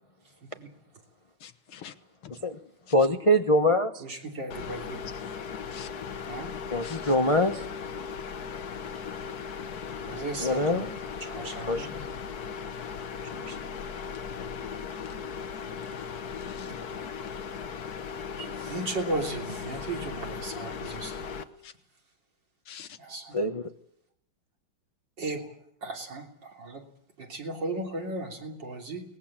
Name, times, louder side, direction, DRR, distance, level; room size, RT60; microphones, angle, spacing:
voice 1, 1.4-1.9 2.2-2.4 5.3-5.4 5.7-5.9 6.8-7.1 16.4-16.7 20.8-21.0 21.6-21.7 22.7-23.0, left 9 dB, 85° left, 10 dB, 2.1 m, -46 dB
voice 2, 2.9-4.0 6.7-7.6 10.4-10.8 11.7-12.1 23.3-23.7, left 1 dB, 25° left, 6 dB, 0.7 m, -24 dB
voice 3, 4.0-5.2 6.2-6.5 10.0-10.9 11.2-11.9 13.2-13.8 16.7-16.8 18.4-21.3 23.0-23.4 25.2-25.5 25.8-26.8 27.2-29.0, right 2 dB, 55° right, 2 dB, 3.8 m, -36 dB
sound 1, 4.5-21.4, left 6 dB, 55° left, 1.4 m, -37 dB
23.0 x 19.5 x 7.4 m, 0.73 s
omnidirectional pair, 2.3 m